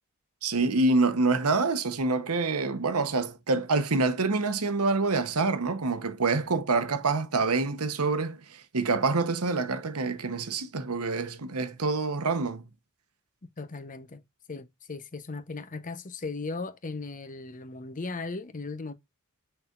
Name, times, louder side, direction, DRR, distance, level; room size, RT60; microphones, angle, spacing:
voice 1, 0.4-12.6, right 3 dB, 80° right, 1.0 m, -26 dB
voice 2, 13.6-14.2 14.5-18.9, left 3 dB, 35° left, 0.8 m, -37 dB
6.5 x 5.8 x 2.5 m
head